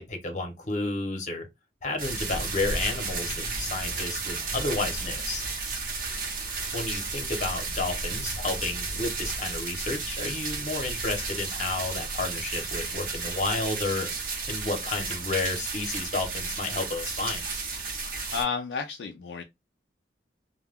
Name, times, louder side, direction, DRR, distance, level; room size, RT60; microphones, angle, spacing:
voice 1, 0.0-1.5 1.8-5.4 6.7-14.1 14.5-17.4, left 3 dB, 45° left, 0.8 m, -31 dB
sound 1, 2.0-18.4, right 3 dB, 50° right, 0.8 m, -33 dB
voice 2, 18.3-19.4, left 5 dB, 75° left, 0.4 m, -31 dB
2.2 x 2.2 x 3.4 m
head